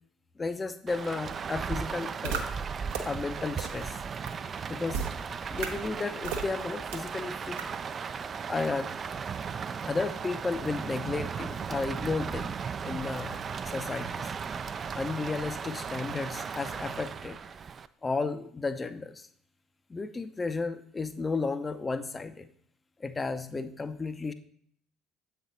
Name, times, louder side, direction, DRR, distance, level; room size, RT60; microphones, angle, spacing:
voice 1, 0.4-2.5 3.0-4.0 4.7-5.0 5.5-7.6 8.5-8.9 9.8-12.6 12.8-14.3 14.9-17.4 18.0-19.3 19.9-22.5 23.0-24.3, left 3 dB, 25° left, 11 dB, 0.5 m, -33 dB
Rain, 0.9-17.9, right 6 dB, 35° right, 0.3 m, -36 dB
sound 1, 2.2-2.4 2.9-3.0 3.6-3.7 4.3-4.4 4.9-5.1 5.6-5.7 6.2-6.4 6.9-7.0 7.6-7.7, right 7 dB, 70° right, 0.7 m, -32 dB
7.5 x 4.3 x 4.1 m, 0.63 s
figure-of-eight pair, 55°, 0 cm